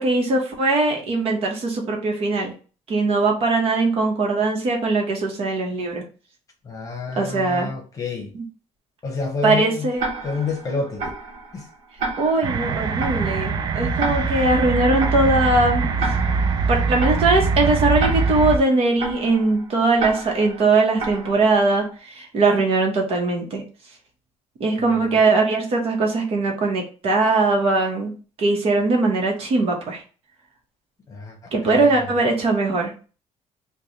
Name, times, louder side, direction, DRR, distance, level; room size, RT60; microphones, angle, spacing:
voice 1, 0.0-2.5 2.9-6.0 7.2-7.7 8.3-8.4 9.4-10.1 12.2-15.9 16.7-23.6 24.6-28.1 28.4-30.0 31.5-33.1, right 3 dB, 55° right, 1.1 m, -20 dB
voice 2, 6.6-8.3 9.0-9.9 10.2-11.1 11.5-11.7 24.8-25.2 31.1-31.4 31.6-32.1, left 4 dB, 30° left, 1.0 m, -29 dB
Tick-tock, 10.0-21.8, right 3 dB, 85° right, 1.0 m, -33 dB
sound 1, 12.4-18.6, right 4 dB, 35° right, 0.4 m, -23 dB
3.3 x 2.3 x 4.0 m
cardioid pair, 155°, 12 cm